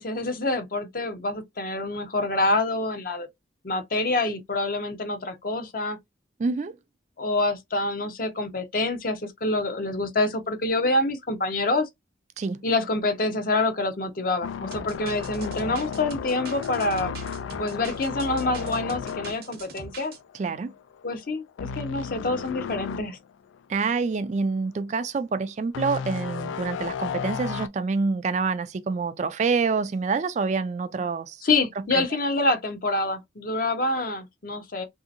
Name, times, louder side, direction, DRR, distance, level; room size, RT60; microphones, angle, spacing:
voice 1, 0.0-3.3 3.6-6.0 7.2-11.9 12.6-17.1 17.6-20.1 21.0-23.2 31.4-34.8, left 2 dB, 50° left, 0.7 m, -26 dB
voice 2, 6.4-6.8 12.4-12.6 20.4-20.7 23.7-31.4 31.9-32.1, right 4 dB, 40° right, 0.3 m, -27 dB
sound 1, 14.4-20.5 20.8-21.0 21.6-23.1 23.5-23.6 25.7-27.7, left 6 dB, 85° left, 0.3 m, -33 dB
sound 2, 14.7-20.2, right 4 dB, 55° right, 0.7 m, -43 dB
3.3 x 2.7 x 2.5 m
head